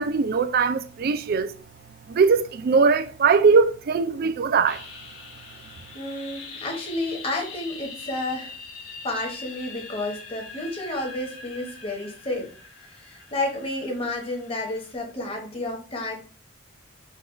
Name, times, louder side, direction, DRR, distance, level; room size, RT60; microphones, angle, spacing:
voice 1, 0.0-1.5 2.1-4.8, right 5 dB, 50° right, 0.3 m, -20 dB
sound 1, 4.7-14.9, left 4 dB, 80° left, 1.1 m, -43 dB
voice 2, 5.9-8.5 9.0-12.5 12.9-16.1, left 2 dB, 30° left, 1.1 m, -31 dB
4.1 x 2.3 x 4.4 m
head